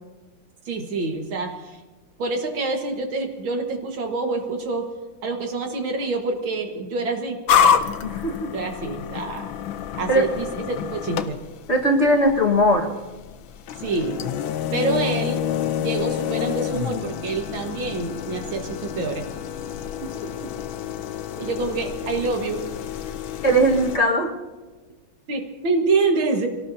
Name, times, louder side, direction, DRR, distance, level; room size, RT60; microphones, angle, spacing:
voice 1, 0.7-1.8 2.2-4.9 5.2-7.4 8.5-9.5 9.9-11.4 13.8-14.2 14.7-15.5 15.8-19.3 21.4-22.6 25.3-26.5, right 3 dB, 85° right, 4 dB, 2.3 m, -26 dB
sound 1, 7.5-24.0, left 8 dB, 85° left, 1.5 m, -27 dB
voice 2, 8.0-8.5 10.1-10.3 11.7-12.9 20.2-20.3 23.4-24.3, equal, 35° left, 0 dB, 1.7 m, -19 dB
25.0 x 18.0 x 2.7 m, 1.2 s
omnidirectional pair, 2.1 m